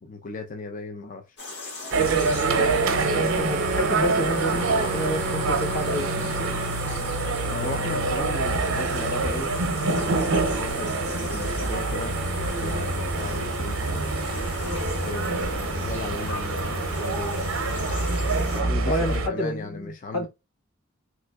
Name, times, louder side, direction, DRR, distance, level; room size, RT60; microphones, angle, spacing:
voice 1, 0.0-1.4 7.4-9.5 9.8-12.2 12.6-14.0 14.8-17.5 18.5-20.3, left 3 dB, 40° left, 0.4 m, -36 dB
sound 1, 1.4-18.6, left 2 dB, 55° left, 1.2 m, -38 dB
sound 2, 1.9-19.3, right 3 dB, 80° right, 0.6 m, -26 dB
Wind instrument woodwind instrument, 2.8-6.9, right 4 dB, 40° right, 0.4 m, -33 dB
voice 2, 3.1-6.1 18.9-20.3, equal, 85° left, 1.5 m, -29 dB
3.4 x 3.0 x 2.3 m
head